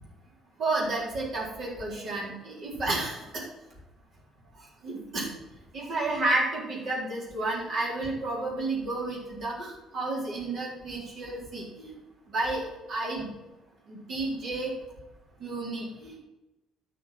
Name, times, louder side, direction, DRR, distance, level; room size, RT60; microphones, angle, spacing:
voice 1, 0.6-3.4 4.8-5.3 5.7-11.9 12.3-13.3 13.9-14.7 15.4-16.2, right 2 dB, 50° right, -3 dB, 3.9 m, -31 dB
9.6 x 6.5 x 5.9 m, 1.0 s
figure-of-eight pair, 50°, 0 cm